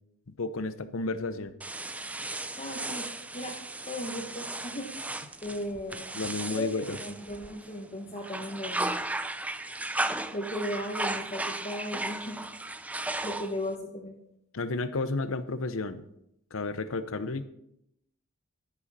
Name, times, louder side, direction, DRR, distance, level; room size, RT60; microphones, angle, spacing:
voice 1, 0.4-1.5 6.1-7.0 14.5-16.0 16.5-17.5, left 3 dB, 70° left, 12 dB, 0.7 m, -32 dB
sound 1, 1.6-7.8 8.2-13.7, right 2 dB, 5° right, 0.4 m, -35 dB
voice 2, 2.6-3.1 3.3-3.6 3.9-5.1 5.4-6.2 6.5-9.0 10.3-12.4 13.2-14.2, left 1 dB, 30° left, 0 dB, 1.2 m, -36 dB
11.0 x 11.0 x 4.2 m, 0.78 s
head